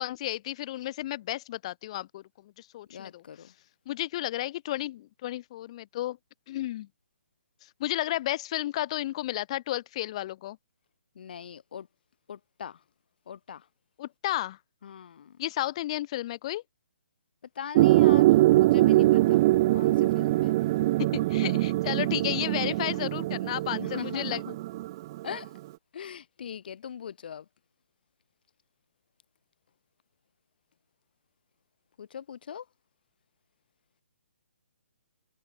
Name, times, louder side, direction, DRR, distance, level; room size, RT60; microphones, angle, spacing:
voice 1, 0.0-3.2 3.9-6.2 6.5-6.9 7.8-10.6 14.0-14.6 15.4-16.6 21.1-24.4, left 14 dB, 25° left, 2.9 m, -32 dB
voice 2, 2.9-3.5 11.2-11.9 12.3-12.8 13.3-13.7 14.8-15.3 17.6-20.5 23.8-24.6 25.2-25.5 25.9-27.4 32.0-32.6, left 8 dB, 45° left, 1.9 m, -41 dB
sound 1, 17.7-25.5, right 17 dB, 20° right, 0.4 m, -23 dB
hypercardioid pair, 170°, 7 cm